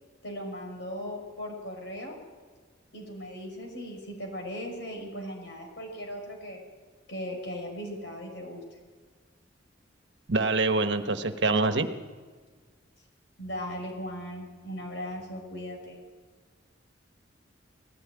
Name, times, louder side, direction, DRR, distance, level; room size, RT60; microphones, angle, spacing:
voice 1, 0.2-2.2 2.9-6.6 7.1-8.6 13.4-16.0, equal, 65° left, 2 dB, 5.9 m, -38 dB
voice 2, 10.3-11.9, right 3 dB, 65° right, 8 dB, 1.3 m, -25 dB
19.0 x 16.0 x 9.4 m, 1.5 s
head